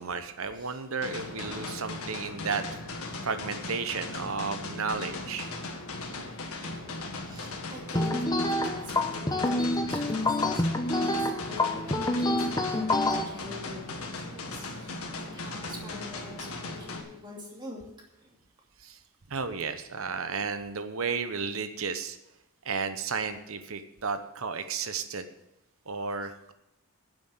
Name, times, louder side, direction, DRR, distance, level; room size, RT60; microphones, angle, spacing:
voice 1, 0.0-2.6 3.2-5.5 18.8-19.0 19.3-22.2 22.6-25.3 25.9-26.5, right 5 dB, 70° right, 10 dB, 1.0 m, -33 dB
sound 1, 1.0-17.0, left 2 dB, 80° left, 1.8 m, -38 dB
voice 2, 1.4-2.1 2.4-3.2 3.7-4.2 6.6-17.8 18.2-18.4, left 1 dB, 20° right, -1 dB, 2.7 m, -45 dB
sound 2, 7.9-13.2, left 2 dB, 15° left, 0.9 m, -27 dB
10.0 x 7.7 x 7.9 m, 0.88 s
head